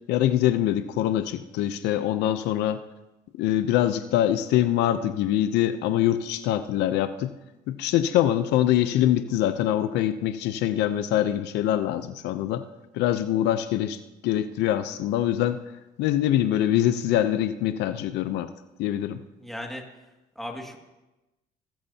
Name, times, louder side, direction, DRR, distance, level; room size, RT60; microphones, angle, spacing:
voice 1, 0.1-2.8 3.4-7.3 7.7-12.6 12.9-15.6 16.0-18.5 18.8-19.2, left 12 dB, 85° left, 11 dB, 0.7 m, -24 dB
voice 2, 19.4-19.8 20.4-20.8, left 1 dB, ahead, 1 dB, 2.2 m, -36 dB
20.5 x 13.5 x 2.9 m, 1.0 s
cardioid pair, 110°, 17 cm